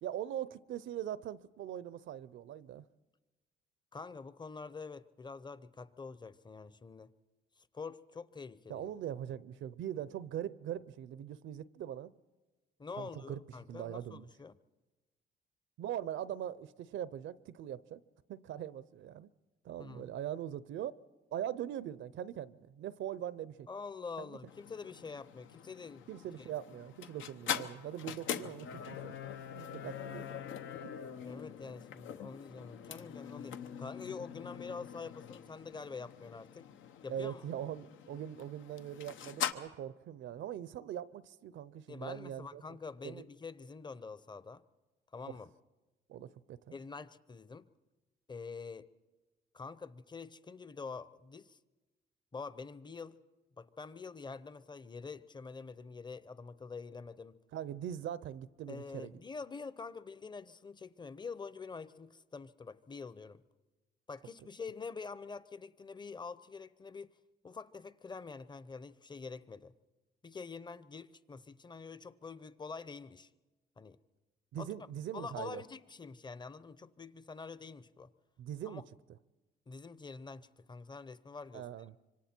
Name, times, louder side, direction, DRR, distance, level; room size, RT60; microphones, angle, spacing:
voice 1, 0.0-2.8 8.7-12.1 13.0-13.4 13.7-14.3 15.8-18.0 18.3-19.3 19.6-20.9 21.3-23.7 24.2-24.4 26.1-30.4 30.8-30.9 37.1-42.6 43.0-43.2 45.3-45.4 46.1-46.8 57.5-59.1 74.5-75.6 78.4-78.8 81.5-81.9, right 10 dB, 75° right, 17 dB, 0.6 m, -41 dB
voice 2, 3.9-7.1 7.6-8.9 12.8-14.5 19.8-20.1 23.7-26.0 26.4-26.5 31.2-36.7 37.0-37.5 41.9-44.6 45.1-45.5 46.7-47.7 48.3-48.9 49.5-51.6 52.3-53.2 53.6-57.4 58.7-63.4 64.1-67.1 67.4-69.7 70.2-73.3 73.8-74.0 74.6-74.7 75.1-78.1 78.7-78.8 79.7-81.7, left 4 dB, 20° left, 16 dB, 0.8 m, -46 dB
sound 1, 24.5-39.5, left 9 dB, 80° left, 1.0 m, -43 dB
26.0 x 24.5 x 4.5 m, 1.1 s
cardioid pair, 90°, 20 cm